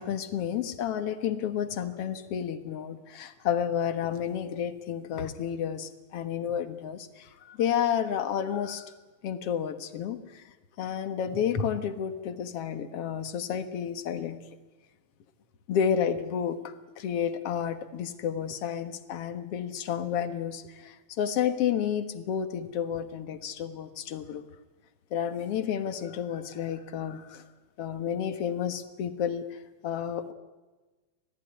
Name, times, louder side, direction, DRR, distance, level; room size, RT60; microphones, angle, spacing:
voice 1, 0.0-8.9 9.2-14.4 15.7-24.5 25.1-27.4 27.8-30.3, left 8 dB, 60° left, 10 dB, 2.2 m, -31 dB
26.0 x 17.5 x 9.8 m, 1.2 s
omnidirectional pair, 3.4 m